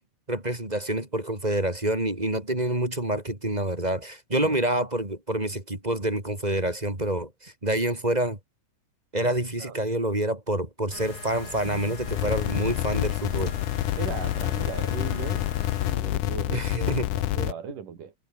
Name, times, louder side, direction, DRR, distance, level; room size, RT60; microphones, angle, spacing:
voice 1, 0.3-8.4 9.1-13.6 16.5-17.0, right 1 dB, 10° right, 3.9 m, -27 dB
sound 1, 10.9-15.9, left 4 dB, 30° left, 2.8 m, -39 dB
sound 2, 12.1-17.5, left 16 dB, 75° left, 2.3 m, -28 dB
voice 2, 14.0-15.5 15.8-18.1, right 7 dB, 75° right, 4.7 m, -38 dB
omnidirectional pair, 3.8 m